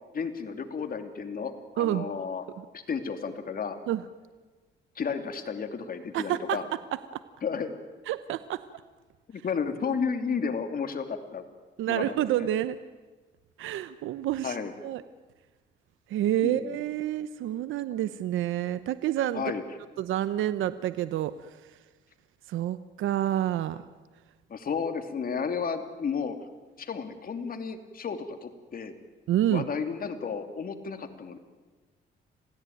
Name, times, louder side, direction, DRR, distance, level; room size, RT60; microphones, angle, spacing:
voice 1, 0.1-2.4 2.7-3.8 5.0-6.6 7.4-7.7 9.3-11.4 11.9-12.5 14.4-14.7 16.4-16.8 19.3-19.6 24.5-26.4 26.8-28.9 29.5-31.4, left 6 dB, 45° left, 7 dB, 2.7 m, -32 dB
voice 2, 1.8-2.1 2.6-2.7 3.9-4.0 6.1-6.8 8.1-8.6 11.8-12.8 13.6-14.6 14.8-15.0 16.1-19.4 20.0-21.3 22.5-23.8 29.3-29.7, right 12 dB, 80° right, 13 dB, 0.9 m, -28 dB
27.0 x 16.5 x 9.3 m, 1.3 s
cardioid pair, 90°, 20 cm